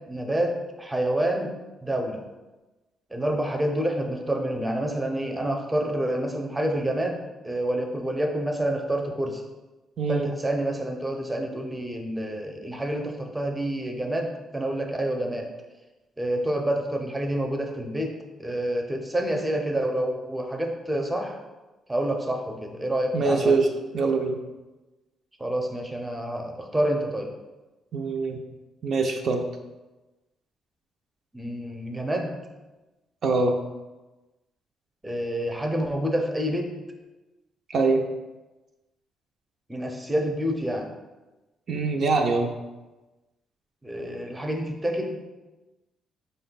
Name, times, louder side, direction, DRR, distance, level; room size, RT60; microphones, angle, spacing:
voice 1, 0.1-1.5 1.8-2.2 3.1-9.4 10.1-15.5 16.2-21.4 21.9-23.6 25.4-27.3 31.3-32.4 35.0-36.7 39.7-40.9 43.8-45.2, right 1 dB, 10° right, 3 dB, 0.6 m, -28 dB
voice 2, 10.0-10.3 23.1-23.7 23.9-24.4 27.9-28.4 28.8-29.4 33.2-33.6 37.7-38.0 41.7-42.5, right 3 dB, 60° right, 2 dB, 0.4 m, -23 dB
5.3 x 2.2 x 4.0 m, 1.1 s
cardioid pair, 90°, 0 cm